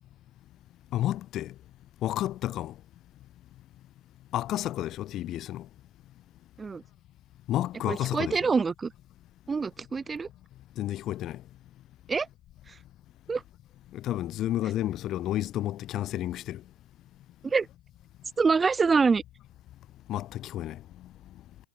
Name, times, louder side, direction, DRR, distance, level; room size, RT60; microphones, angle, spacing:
voice 1, 0.9-1.5 2.0-2.7 4.3-5.7 7.5-8.4 10.8-11.4 13.9-16.6 20.1-20.8, left 13 dB, 35° left, 3.6 m, -31 dB
voice 2, 7.9-8.9 9.5-10.3 12.1-12.3 13.3-13.4 17.4-17.7 18.4-19.2, right 5 dB, 15° right, 2.2 m, -25 dB
figure-of-eight pair, 90°, 0 cm